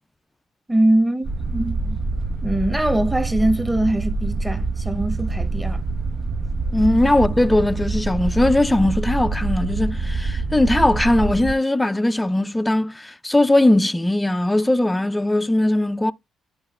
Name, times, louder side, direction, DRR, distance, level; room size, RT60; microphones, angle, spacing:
voice 1, 0.7-2.0 2.4-5.8, right 1 dB, 15° right, 1.1 m, -22 dB
sound 1, 1.2-11.5, right 3 dB, 45° right, 0.6 m, -25 dB
voice 2, 6.7-16.1, left 1 dB, 10° left, 0.5 m, -19 dB
14.0 x 4.7 x 2.3 m
figure-of-eight pair, 45°, 0 cm